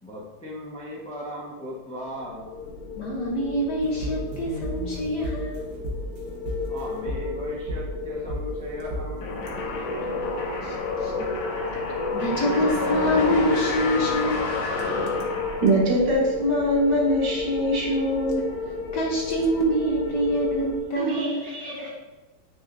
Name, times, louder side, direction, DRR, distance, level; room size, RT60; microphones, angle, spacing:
voice 1, 0.0-2.4 6.6-10.0, equal, 10° left, -5 dB, 0.4 m, -38 dB
sound 1, 2.2-20.8, left 4 dB, 45° left, 0.8 m, -33 dB
voice 2, 3.0-5.7 10.6-11.3 11.7-11.8 12.1-14.5 18.9-21.5, equal, 60° left, -1 dB, 1.3 m, -26 dB
sound 2, 3.8-6.2 6.5-6.8 7.1-7.4 7.7-8.0 8.3-8.6 8.9-9.2, right 1 dB, 75° right, 2.0 m, -33 dB
sound 3, 9.2-16.0, left 2 dB, 85° left, 2.0 m, -29 dB
voice 3, 15.6-18.5 21.0-21.9, equal, 55° right, -3 dB, 2.0 m, -23 dB
7.6 x 6.1 x 2.6 m, 1.1 s
omnidirectional pair, 2.4 m